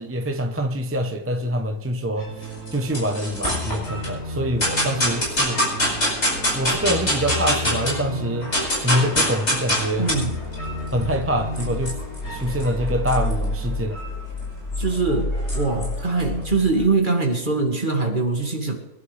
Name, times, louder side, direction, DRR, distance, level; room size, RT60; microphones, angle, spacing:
voice 1, 0.0-5.7 6.5-10.1 10.9-12.0 12.3-14.0, equal, 15° right, 5 dB, 0.6 m, -25 dB
sound 1, 2.2-15.1, left 1 dB, 75° left, 7.7 m, -34 dB
sound 2, 2.4-4.1 4.6-8.0 8.3-16.9, left 1 dB, 45° left, 5.5 m, -26 dB
voice 2, 10.0-10.4 14.8-18.7, right 3 dB, 30° right, 2 dB, 2.3 m, -22 dB
24.0 x 11.5 x 3.4 m, 0.96 s
omnidirectional pair, 1.7 m